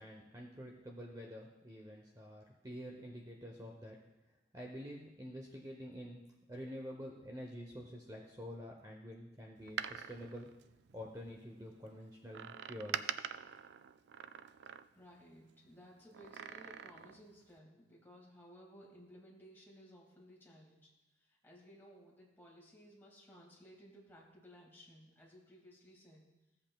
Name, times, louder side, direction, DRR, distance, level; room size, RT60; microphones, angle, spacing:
voice 1, 0.0-4.0 4.5-6.2 6.5-10.5 10.9-13.1, equal, 20° right, 0 dB, 0.8 m, -48 dB
Door, 9.6-11.4 12.3-15.2 16.1-17.3 17.6-17.7, right 8 dB, 65° right, 0.3 m, -45 dB
voice 2, 14.9-20.9 21.2-26.3, equal, 10° left, -3 dB, 2.1 m, -58 dB
16.0 x 7.8 x 2.3 m, 0.97 s
head